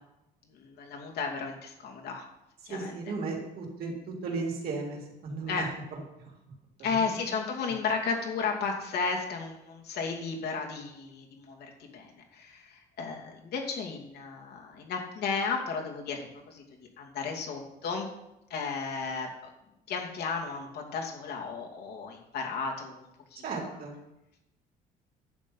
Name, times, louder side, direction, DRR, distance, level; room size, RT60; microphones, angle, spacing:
voice 1, 0.4-2.2 2.6-2.9 5.5-5.7 6.8-18.1 18.5-19.5 19.9-23.7, left 5 dB, 70° left, 0 dB, 2.6 m, -34 dB
voice 2, 2.7-6.0 6.8-7.2 23.4-23.9, right 3 dB, 65° right, -1 dB, 3.5 m, -35 dB
11.0 x 7.6 x 5.5 m, 0.89 s
cardioid pair, 110°, 17 cm